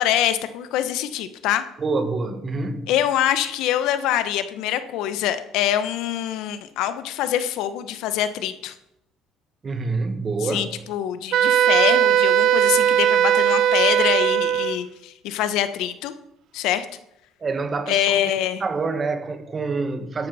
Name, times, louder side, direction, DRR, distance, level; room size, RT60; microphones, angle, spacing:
voice 1, 0.0-1.6 2.9-8.7 10.4-16.1 16.5-16.9 17.9-18.6, left 11 dB, 75° left, 1.1 m, -24 dB
voice 2, 1.8-2.9 9.6-10.7 17.4-18.2 18.6-20.3, right 3 dB, 35° right, 1.8 m, -26 dB
Wind instrument woodwind instrument, 11.3-14.8, right 10 dB, 65° right, 0.7 m, -18 dB
14.0 x 11.0 x 4.3 m
supercardioid pair, 95°, 0 cm